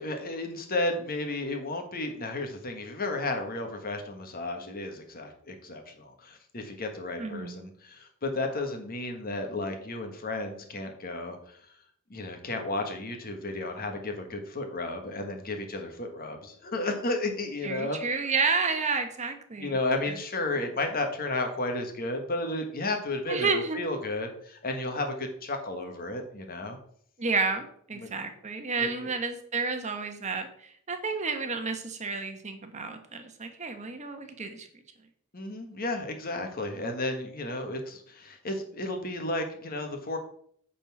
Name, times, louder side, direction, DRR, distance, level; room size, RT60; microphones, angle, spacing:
voice 1, 0.0-11.4 12.1-18.0 19.6-26.8 28.0-28.1 28.8-28.9 35.3-40.2, left 2 dB, 40° left, 5 dB, 1.5 m, -33 dB
voice 2, 7.2-7.7 17.6-19.8 20.1-20.2 23.3-23.8 27.2-34.7, right 4 dB, 35° right, 6 dB, 1.2 m, -31 dB
9.1 x 4.2 x 6.0 m, 0.62 s
head